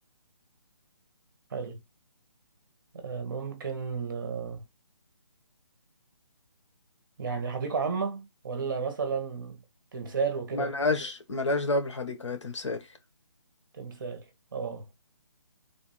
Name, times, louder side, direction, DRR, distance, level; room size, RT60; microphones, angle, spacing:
voice 1, 2.9-4.6 7.2-9.6 9.9-10.7 13.7-14.3 14.5-14.9, right 5 dB, 40° right, 1.0 m, -32 dB
voice 2, 10.5-12.9, left 2 dB, 70° left, 1.1 m, -29 dB
3.5 x 2.6 x 4.1 m
hypercardioid pair, 170°, 16 cm